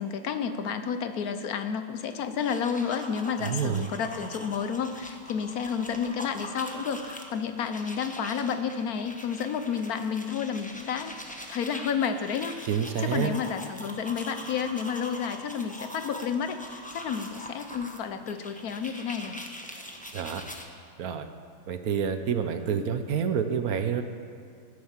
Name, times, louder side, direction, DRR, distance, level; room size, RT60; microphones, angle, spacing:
voice 1, 0.0-11.1 11.5-12.7 13.0-19.4, left 7 dB, 70° left, 9 dB, 1.2 m, -31 dB
sound 1, 2.2-20.6, equal, 5° left, 0.9 m, -43 dB
voice 2, 3.4-3.9 12.7-13.3 20.1-20.4 21.0-21.3 21.7-24.0, right 7 dB, 70° right, 9 dB, 1.3 m, -28 dB
15.5 x 9.7 x 7.3 m, 2.3 s
omnidirectional pair, 1.7 m